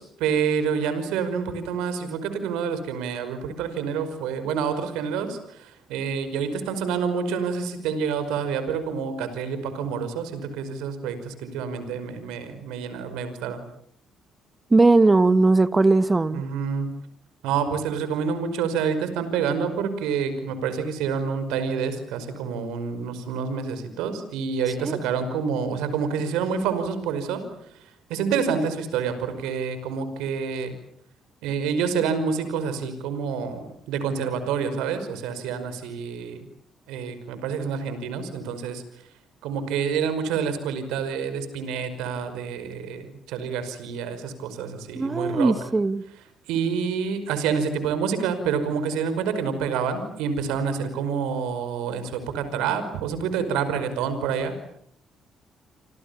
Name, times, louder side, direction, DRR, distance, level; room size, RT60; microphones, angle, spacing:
voice 1, 0.0-13.6 16.3-16.9 17.4-30.7 31.4-36.5 36.9-38.8 39.4-45.5 46.5-54.5, right 6 dB, 80° right, 5.3 m, -28 dB
voice 2, 14.7-16.4 24.8-25.0 44.9-46.0, right 3 dB, 25° right, 2.0 m, -19 dB
28.0 x 28.0 x 7.2 m
hypercardioid pair, 50°, 0 cm